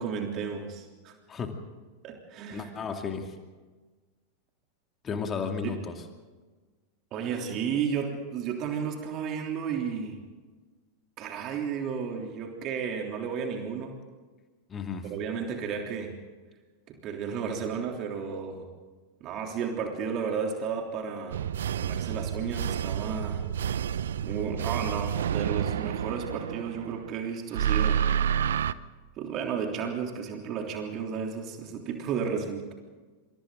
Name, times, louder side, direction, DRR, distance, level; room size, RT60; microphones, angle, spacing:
voice 1, 0.0-1.1 2.0-2.7 5.6-5.8 7.1-10.2 11.2-14.0 15.1-16.2 16.9-18.6 19.2-21.4 21.7-23.4 24.2-28.1 29.2-32.7, right 6 dB, 35° right, 2 dB, 3.2 m, -33 dB
voice 2, 2.5-3.3 5.0-5.9 14.7-15.1, left 5 dB, 25° left, 4 dB, 2.5 m, -33 dB
sound 1, 21.3-27.1 27.5-28.7, right 9 dB, 60° right, 0.6 m, -29 dB
27.5 x 27.0 x 3.9 m, 1.3 s
figure-of-eight pair, 90°, 0 cm